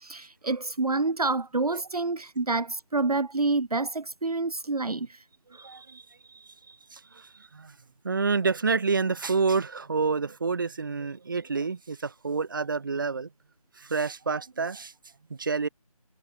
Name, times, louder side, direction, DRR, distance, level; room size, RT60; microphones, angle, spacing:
voice 1, 0.0-5.2, right 3 dB, 75° right, 1.1 m, -28 dB
voice 2, 5.5-7.8 8.0-13.3 13.8-14.9 15.3-15.7, right 4 dB, 35° right, 2.4 m, -29 dB
figure-of-eight pair, 165°, 19 cm